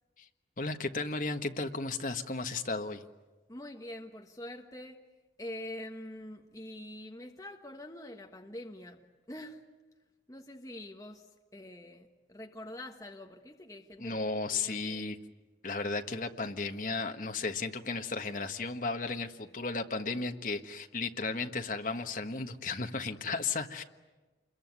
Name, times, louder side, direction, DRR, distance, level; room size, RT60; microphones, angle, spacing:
voice 1, 0.6-3.0 14.0-15.2 15.6-23.8, left 3 dB, 45° left, 5 dB, 1.5 m, -34 dB
voice 2, 3.5-5.0 5.4-9.0 9.3-9.6 10.3-15.1, left 1 dB, 20° left, 2 dB, 1.4 m, -45 dB
28.0 x 22.5 x 9.6 m, 1.2 s
head